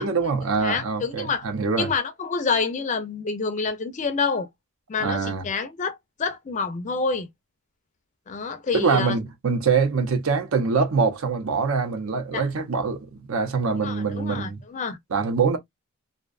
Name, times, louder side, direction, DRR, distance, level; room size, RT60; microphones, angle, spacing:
voice 1, 0.0-1.9 5.0-5.5 8.7-14.6 15.1-15.6, right 5 dB, 70° right, 0.6 m, -24 dB
voice 2, 0.6-1.4 1.8-4.5 4.9-7.3 8.3-9.2 12.3-12.4 13.8-15.0, left 5 dB, 35° left, 0.4 m, -27 dB
2.6 x 2.1 x 2.3 m
head